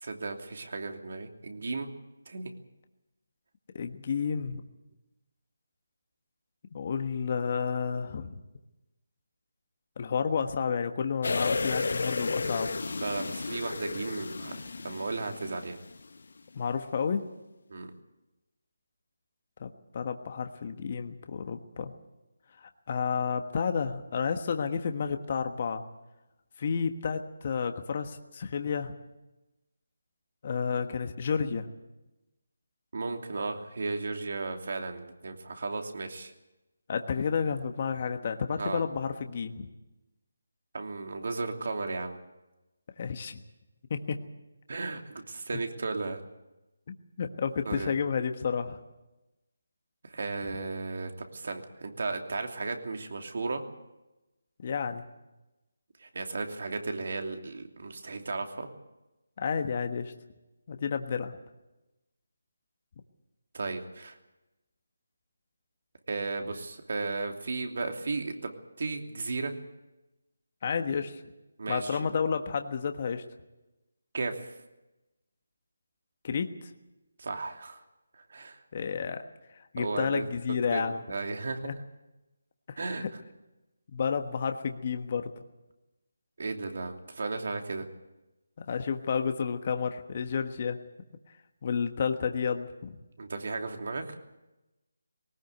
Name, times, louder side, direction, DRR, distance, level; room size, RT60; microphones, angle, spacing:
voice 1, 0.0-1.9 2.3-2.5 13.0-15.8 17.7-17.9 32.9-36.3 38.6-38.8 40.7-42.2 44.7-46.2 47.6-47.9 50.0-53.6 56.0-58.7 63.5-64.2 66.1-68.5 68.8-69.5 71.6-72.0 74.1-74.4 77.2-77.8 78.1-78.6 79.8-80.3 80.7-81.7 82.8-83.0 86.4-87.9 93.2-94.2, right 3 dB, 60° right, 4 dB, 2.9 m, -35 dB
voice 2, 3.7-4.6 6.7-8.3 10.0-12.7 16.5-17.2 19.6-21.9 22.6-25.8 26.6-28.9 30.4-31.7 36.9-39.7 43.0-43.4 43.9-44.2 47.2-48.8 54.6-55.0 59.4-60.1 60.7-61.4 70.6-71.2 71.7-73.2 76.2-76.5 78.7-79.2 79.5-81.0 81.6-81.7 82.7-83.1 83.9-85.3 88.6-90.8 91.6-93.0, left 6 dB, 40° left, 7 dB, 1.3 m, -31 dB
sound 1, 11.2-16.1 16.4-16.5, left 3 dB, 65° left, 1.1 m, -33 dB
20.0 x 18.5 x 8.1 m, 1.0 s
figure-of-eight pair, 165°, 0 cm